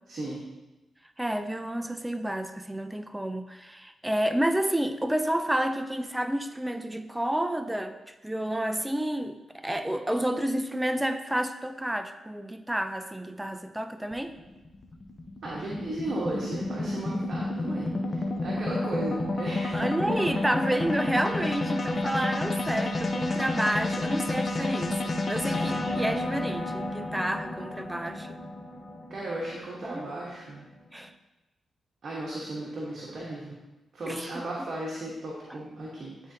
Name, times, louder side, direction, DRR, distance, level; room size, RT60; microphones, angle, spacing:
voice 1, 0.1-0.4 15.4-19.9 29.1-30.7 32.0-33.6 33.9-36.3, right 1 dB, 55° right, -5 dB, 1.2 m, -35 dB
voice 2, 1.2-14.4 19.7-28.4 29.9-30.1 30.9-31.1 34.1-34.4 35.5-35.6, right 1 dB, 10° right, 9 dB, 0.4 m, -30 dB
sound 1, 14.1-30.5, left 2 dB, 40° left, 0.8 m, -31 dB
9.9 x 3.8 x 2.8 m, 1.1 s
cardioid pair, 65°, 0 cm